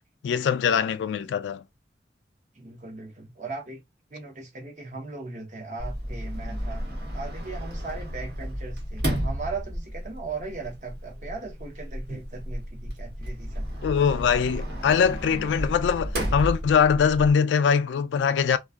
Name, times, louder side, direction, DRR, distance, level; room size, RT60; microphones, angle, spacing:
voice 1, 0.2-1.6 13.8-18.6, left 7 dB, 85° left, 0.3 m, -22 dB
voice 2, 2.5-3.8 4.1-6.8 7.1-13.7, right 3 dB, 40° right, 0.7 m, -38 dB
Sliding door, 5.8-17.3, equal, 60° right, 1.0 m, -33 dB
2.5 x 2.2 x 2.3 m
head